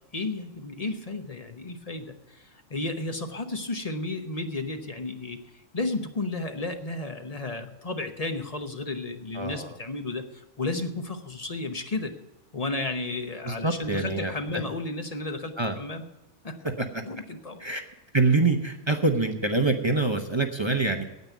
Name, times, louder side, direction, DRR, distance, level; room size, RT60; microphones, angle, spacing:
voice 1, 0.1-2.4 2.7-5.4 5.7-12.1 12.5-16.0 16.4-16.6 17.0-17.6, left 2 dB, 35° left, 6 dB, 1.0 m, -33 dB
voice 2, 9.3-9.7 13.4-14.6 15.6-15.8 16.6-17.0 17.6-17.8 18.1-21.0, right 3 dB, 25° right, 4 dB, 0.9 m, -25 dB
9.4 x 8.8 x 9.2 m, 0.98 s
omnidirectional pair, 1.3 m